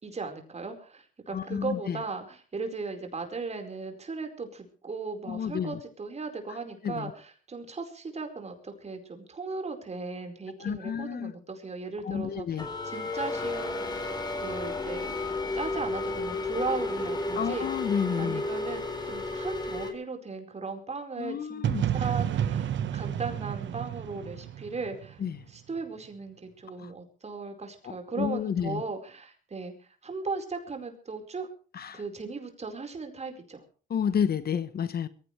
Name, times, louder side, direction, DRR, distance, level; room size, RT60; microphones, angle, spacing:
voice 1, 0.0-12.6 12.8-17.7 18.2-21.6 21.9-25.2 25.5-31.5 31.9-33.6, right 4 dB, 35° right, 4.7 m, -37 dB
voice 2, 1.3-2.0 5.3-5.8 6.5-6.6 6.8-7.1 10.6-11.3 12.0-12.7 17.3-18.4 21.2-21.9 25.2-25.4 26.8-26.9 27.8-28.8 31.7-32.0 33.9-35.1, left 8 dB, 50° left, 1.0 m, -31 dB
sound 1, 12.6-19.9, left 2 dB, 20° left, 4.3 m, -32 dB
sound 2, 21.6-25.5, right 9 dB, 70° right, 1.3 m, -30 dB
22.5 x 16.0 x 3.3 m
cardioid pair, 90°, 20 cm